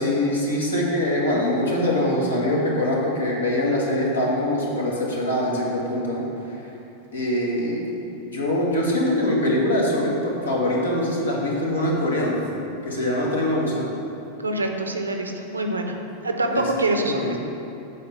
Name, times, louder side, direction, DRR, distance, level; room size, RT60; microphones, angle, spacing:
voice 1, 0.0-6.3 7.1-12.4 12.8-13.9 16.5-16.7 17.0-17.4, left 1 dB, 75° left, -4 dB, 1.6 m, -23 dB
voice 2, 14.4-15.9 16.2-17.4, right 2 dB, 80° right, 4 dB, 0.7 m, -25 dB
7.5 x 4.2 x 6.8 m, 2.9 s
figure-of-eight pair, 90°, 0 cm